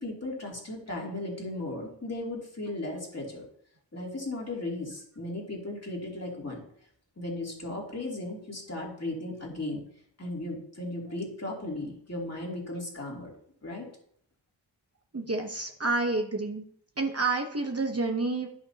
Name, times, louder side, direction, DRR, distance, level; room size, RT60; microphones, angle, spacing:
voice 1, 0.0-3.4 3.9-6.6 7.2-9.8 10.2-13.3 13.6-13.9, left 2 dB, 35° left, -3 dB, 2.8 m, -36 dB
voice 2, 15.1-16.6 17.0-18.5, right 3 dB, 30° right, 2 dB, 1.0 m, -29 dB
11.0 x 6.0 x 2.8 m, 0.64 s
wide cardioid pair, 55°, 46 cm